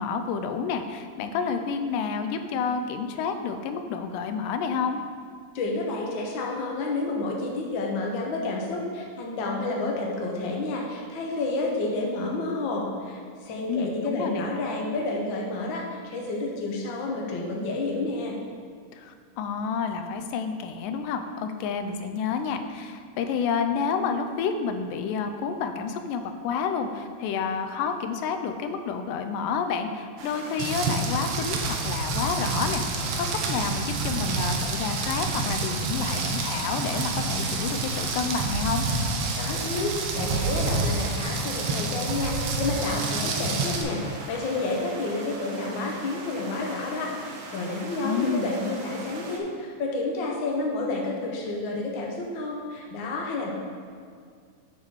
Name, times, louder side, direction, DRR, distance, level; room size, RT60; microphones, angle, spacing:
voice 1, 0.0-5.0 13.7-14.5 18.9-33.0 33.3-38.9 48.0-48.5, left 6 dB, 90° left, 7 dB, 2.2 m, -29 dB
voice 2, 5.5-18.4 39.3-53.5, left 2 dB, 70° left, -1 dB, 1.1 m, -30 dB
sound 1, 30.2-49.4, right 2 dB, 70° right, 1.6 m, -41 dB
Rain, 30.6-43.8, right 3 dB, 85° right, 1.3 m, -28 dB
8.4 x 3.9 x 6.2 m, 2.1 s
omnidirectional pair, 3.7 m